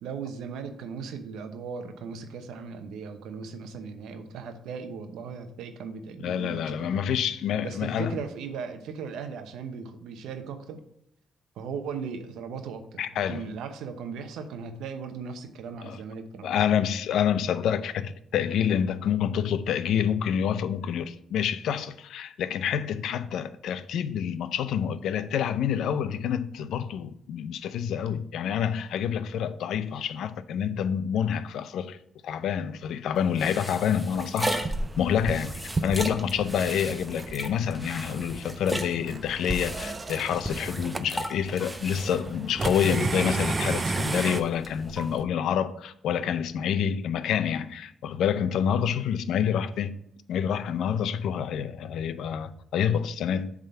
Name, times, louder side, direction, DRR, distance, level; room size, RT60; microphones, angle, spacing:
voice 1, 0.0-7.0 7.6-10.8 11.6-16.8, right 5 dB, 85° right, 0.8 m, -37 dB
voice 2, 6.2-8.1 13.0-13.5 15.8-16.0 16.4-32.0 32.2-34.7 35.0-50.0 50.3-53.5, left 8 dB, 75° left, 0.4 m, -27 dB
sound 1, 33.1-45.2, right 1 dB, 5° right, 0.8 m, -36 dB
sound 2, 34.4-44.4, right 3 dB, 30° right, 0.4 m, -34 dB
7.4 x 3.7 x 5.6 m
cardioid pair, 90°, 0 cm